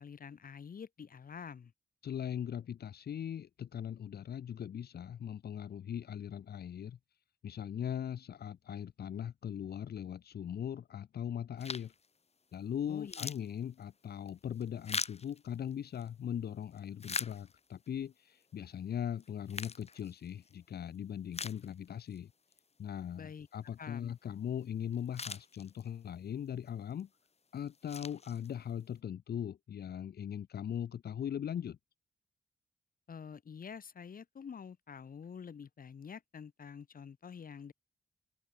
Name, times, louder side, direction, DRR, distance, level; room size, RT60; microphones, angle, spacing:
voice 1, 0.0-1.7 12.9-13.3 23.2-23.5 23.8-24.1 33.1-37.7, left 6 dB, 65° left, 7.9 m, -47 dB
voice 2, 2.0-7.0 7.4-11.9 12.5-22.3 22.8-27.1 27.5-31.8, left 9 dB, 90° left, 3.1 m, -40 dB
sound 1, 11.6-12.1 12.5-12.6 12.9-16.1 16.6-17.9 18.4-18.5 19.2-20.6 21.0-21.1 21.3-22.2 22.5-22.6 24.6-24.7 24.9-26.1 26.7-27.0 27.5-28.8, left 4 dB, 40° left, 3.2 m, -42 dB
open air
cardioid pair, 95°, 16 cm